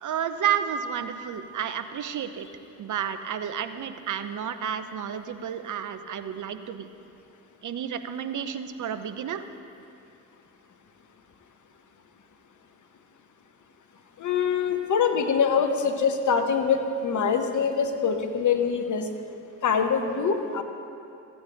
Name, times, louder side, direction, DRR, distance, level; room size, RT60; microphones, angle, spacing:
voice 1, 0.0-2.5 2.8-6.9 7.6-9.4, right 8 dB, 50° right, 10 dB, 0.7 m, -31 dB
voice 2, 14.2-19.1 19.6-20.6, left 6 dB, 50° left, 6 dB, 1.1 m, -24 dB
15.5 x 8.8 x 2.6 m, 2.6 s
hypercardioid pair, 45°, 40 cm